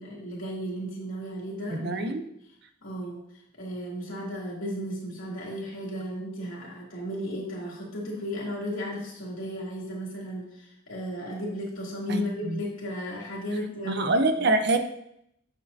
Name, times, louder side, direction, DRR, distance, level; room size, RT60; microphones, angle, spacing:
voice 1, 0.0-2.1 2.8-3.2 3.6-14.5, equal, 85° left, -3 dB, 2.6 m, -35 dB
voice 2, 1.7-2.2 12.1-12.6 13.9-14.8, right 2 dB, 55° right, 8 dB, 0.7 m, -25 dB
8.8 x 6.5 x 2.7 m, 0.75 s
head